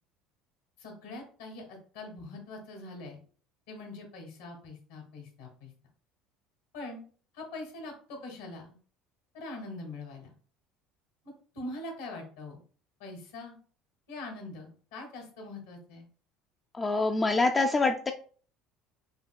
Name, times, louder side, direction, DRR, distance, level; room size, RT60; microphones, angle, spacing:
voice 1, 0.8-3.2 3.7-5.7 6.7-7.0 7.3-8.8 9.3-10.3 11.2-12.6 13.0-13.6 14.1-16.0, left 2 dB, 75° left, 3 dB, 1.4 m, -43 dB
voice 2, 16.7-18.1, left 3 dB, 25° left, 4 dB, 0.4 m, -25 dB
5.2 x 2.7 x 2.2 m, 0.43 s
hypercardioid pair, 70°, 0 cm